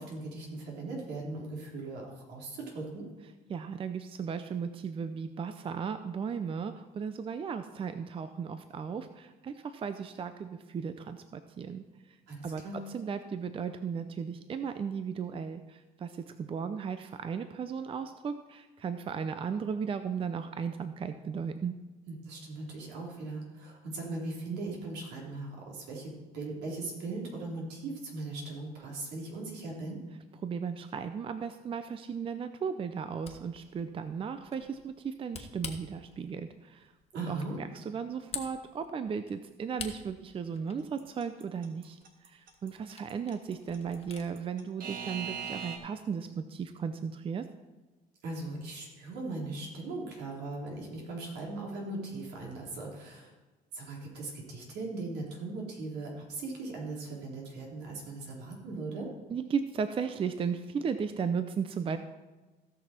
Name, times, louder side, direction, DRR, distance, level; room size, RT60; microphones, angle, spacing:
voice 1, 0.0-3.1 12.3-12.8 22.1-30.0 37.1-37.6 48.2-53.3 53.7-59.1, right 2 dB, 80° right, -2 dB, 3.6 m, -39 dB
voice 2, 3.5-12.2 12.4-21.7 30.4-36.9 37.3-47.5 59.3-62.0, right 6 dB, 35° right, 10 dB, 0.5 m, -36 dB
Camera, 33.0-44.3, left 5 dB, 35° left, 1.4 m, -49 dB
Alarm / Clock, 41.0-45.8, right 7 dB, 55° right, 1.7 m, -39 dB
16.5 x 6.1 x 4.4 m, 1.2 s
cardioid pair, 110°, 17 cm